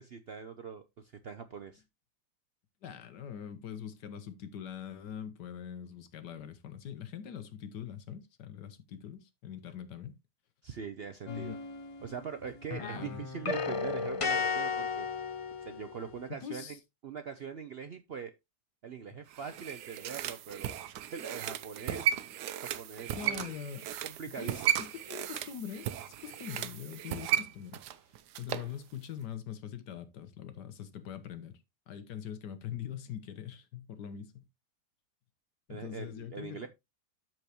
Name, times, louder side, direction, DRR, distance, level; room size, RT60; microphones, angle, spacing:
voice 1, 0.0-1.8 10.6-11.6 12.0-15.1 15.6-16.8 17.0-18.3 18.8-20.8 21.1-22.2 22.6-23.5 24.0-24.7 35.7-36.7, right 6 dB, 65° right, 0.6 m, -42 dB
voice 2, 2.8-10.2 11.3-11.6 12.8-13.2 16.4-16.8 19.1-19.2 23.1-23.9 24.3-25.9 26.2-27.8 28.4-31.6 31.9-34.5 35.7-36.7, left 9 dB, 85° left, 1.6 m, -43 dB
sound 1, 11.3-12.3 12.6-16.2, left 5 dB, 50° left, 0.3 m, -35 dB
sound 2, 19.3-28.7 29.0-29.1, right 11 dB, 85° right, 1.3 m, -35 dB
13.0 x 4.6 x 2.9 m
omnidirectional pair, 1.7 m